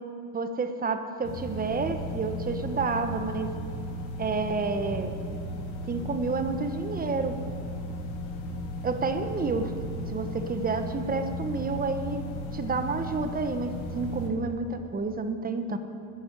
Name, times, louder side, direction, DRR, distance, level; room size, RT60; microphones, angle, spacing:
voice 1, 0.3-3.5 4.2-5.1 5.8-7.3 8.8-9.7 10.1-12.2 12.5-15.8, right 4 dB, 20° right, 8 dB, 1.1 m, -30 dB
sound 1, 1.2-14.3, left 1 dB, 80° left, 2.3 m, -35 dB
11.0 x 10.0 x 8.4 m, 2.7 s
supercardioid pair, 105°, 42 cm